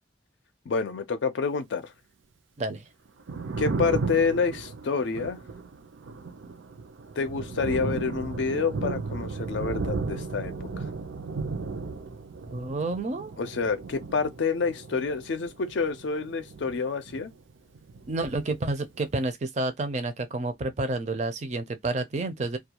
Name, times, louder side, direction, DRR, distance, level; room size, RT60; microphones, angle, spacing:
voice 1, 0.7-1.9 3.6-5.4 7.2-10.7 13.4-17.3, left 5 dB, 70° left, 0.4 m, -28 dB
voice 2, 2.6-2.9 12.5-13.3 18.1-22.6, right 2 dB, 35° right, 0.5 m, -30 dB
Thunder, 3.1-17.5 17.8-19.0, right 4 dB, 85° right, 0.5 m, -35 dB
2.3 x 2.2 x 2.8 m
head